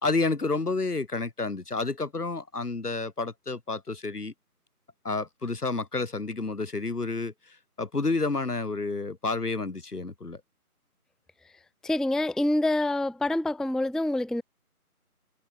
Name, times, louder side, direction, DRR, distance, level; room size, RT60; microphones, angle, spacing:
voice 1, 0.0-4.3 5.0-7.3 7.8-10.4, left 3 dB, 85° left, 1.4 m, -30 dB
voice 2, 11.8-14.4, left 1 dB, ahead, 0.4 m, -26 dB
figure-of-eight pair, 160°, 45 cm